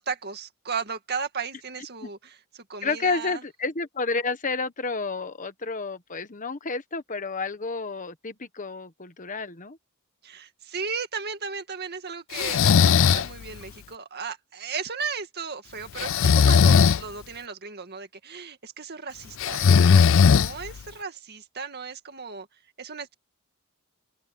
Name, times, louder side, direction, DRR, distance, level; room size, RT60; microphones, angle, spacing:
voice 1, 0.0-3.4 10.2-22.5 22.8-23.1, right 5 dB, 45° right, 2.1 m, -35 dB
voice 2, 2.8-9.8, left 4 dB, 35° left, 1.2 m, -30 dB
Breathing, 12.3-13.3 16.0-17.0 19.4-20.8, left 6 dB, 60° left, 0.4 m, -17 dB
open air
head